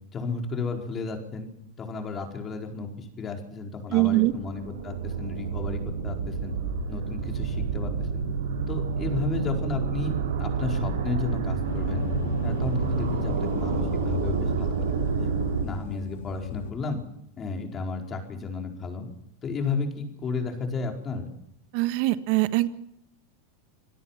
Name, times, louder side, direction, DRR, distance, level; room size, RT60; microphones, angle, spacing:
voice 1, 0.1-1.5 1.8-6.5 6.9-8.2 8.7-12.1 12.4-15.3 15.6-17.0 17.4-19.1 19.4-21.3, left 4 dB, 30° left, 2 dB, 4.7 m, -33 dB
voice 2, 3.9-4.3 21.7-22.7, right 19 dB, 60° right, 12 dB, 1.4 m, -22 dB
Echoing wind, 4.3-15.6, right 5 dB, 85° right, 3.9 m, -29 dB
sound 1, 11.6-16.7, left 8 dB, 80° left, 3.0 m, -35 dB
26.5 x 16.5 x 5.9 m, 0.74 s
hypercardioid pair, 110°, 0 cm